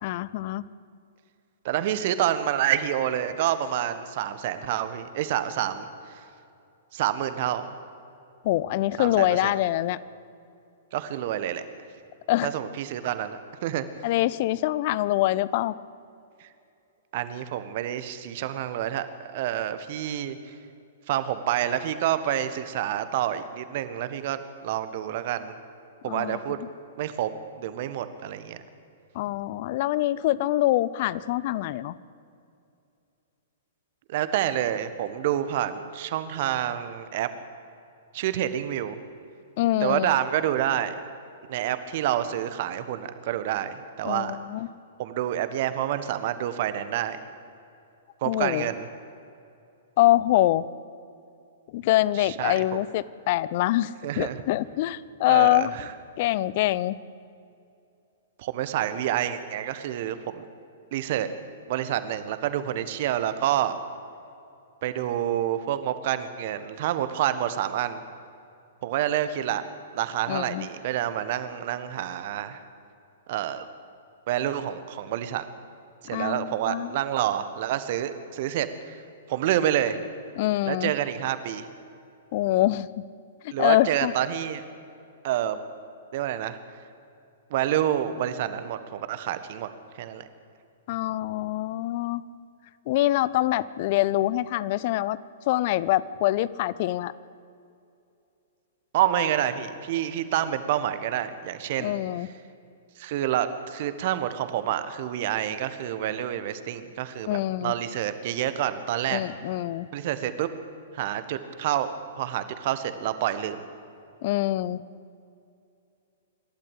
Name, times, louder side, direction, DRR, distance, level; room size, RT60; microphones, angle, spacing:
voice 1, 0.0-0.7 8.4-10.0 12.3-12.5 14.0-15.8 26.0-26.7 29.1-31.9 39.6-40.2 44.0-44.7 48.3-48.7 50.0-50.7 51.7-55.7 56.2-57.0 70.3-70.7 76.1-77.0 80.4-80.9 82.3-83.0 83.4-84.1 90.9-92.2 92.9-95.2 95.5-97.1 101.8-102.3 107.3-107.7 109.1-109.9 114.2-114.8, left 15 dB, 45° left, 19 dB, 0.7 m, -25 dB
voice 2, 1.6-6.2 6.9-7.8 9.0-9.5 10.9-11.6 12.4-13.8 16.4-16.5 17.1-19.1 19.3-20.4 21.1-25.5 26.0-26.6 27.0-27.3 27.6-28.6 34.1-37.3 38.1-39.0 39.8-40.9 41.5-44.4 45.0-47.2 48.2-48.8 52.3-52.6 54.0-54.4 55.3-55.8 58.4-60.4 60.9-61.3 61.7-63.8 64.8-68.0 68.8-69.6 69.9-72.6 73.3-73.6 74.3-75.4 76.0-79.0 79.3-80.0 80.7-81.7 83.5-84.6 85.2-85.6 86.1-86.6 87.5-89.7 90.0-90.3 98.9-101.9 103.0-109.2 109.9-110.5 110.9-113.6, right 11 dB, 50° right, 12 dB, 1.5 m, -28 dB
27.0 x 12.0 x 8.3 m, 2.6 s
figure-of-eight pair, 110°, 0 cm